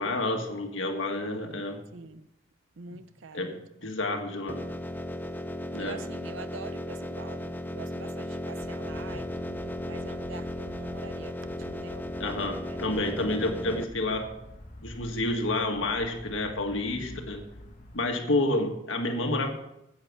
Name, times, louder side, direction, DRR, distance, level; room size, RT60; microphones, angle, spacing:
voice 1, 0.0-1.8 3.3-4.6 5.7-6.0 12.2-14.3 14.8-17.4 17.9-19.5, left 2 dB, 75° left, 1.7 m, -29 dB
voice 2, 1.9-2.3 2.8-3.5 5.8-12.2 12.7-13.0, right 4 dB, 70° right, 0.6 m, -45 dB
sound 1, 4.5-13.8, left 1 dB, 10° left, 0.4 m, -36 dB
sound 2, 8.6-18.0, left 1 dB, 35° left, 1.1 m, -48 dB
8.9 x 8.8 x 5.9 m
head